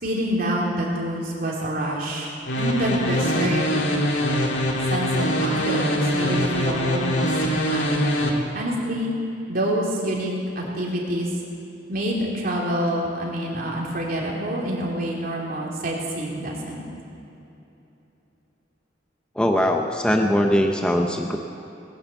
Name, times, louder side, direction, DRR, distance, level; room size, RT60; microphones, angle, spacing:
voice 1, 0.0-3.6 4.9-7.9 8.5-9.2 9.5-11.3 11.9-16.8, right 1 dB, 50° right, -3 dB, 3.1 m, -27 dB
sound 1, 2.5-8.3, equal, 75° left, 2.0 m, -23 dB
voice 2, 19.4-21.4, equal, 5° left, 3 dB, 0.7 m, -21 dB
19.0 x 10.0 x 7.1 m, 2.9 s
head